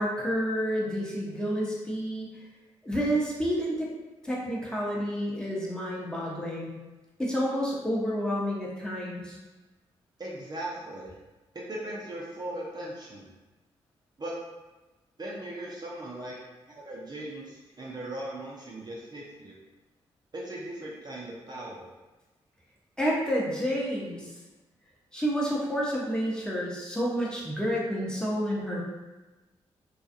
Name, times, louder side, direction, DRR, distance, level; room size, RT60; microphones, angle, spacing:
voice 1, 0.0-2.3 2.8-3.9 4.2-6.7 7.2-9.4 23.0-24.3 25.1-28.8, equal, 5° left, -5 dB, 0.8 m, -29 dB
voice 2, 10.2-11.1 11.5-13.3 14.2-14.4 15.2-16.4 16.7-19.6 20.3-21.9, right 1 dB, 35° right, -4 dB, 0.6 m, -38 dB
2.3 x 2.3 x 2.6 m, 1.1 s
supercardioid pair, 40°, 13 cm